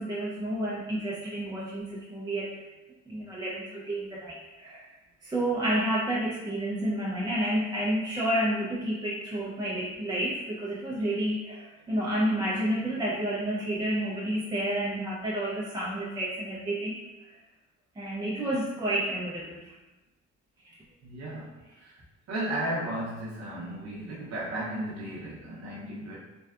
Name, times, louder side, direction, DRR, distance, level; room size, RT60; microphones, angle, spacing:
voice 1, 0.0-2.5 3.1-4.9 5.2-16.9 18.0-19.7, right 1 dB, 15° right, -6 dB, 0.4 m, -30 dB
voice 2, 21.0-22.0 22.3-26.2, right 1 dB, 60° right, -6 dB, 0.6 m, -34 dB
2.6 x 2.2 x 2.3 m, 1.1 s
cardioid pair, 90°, 30 cm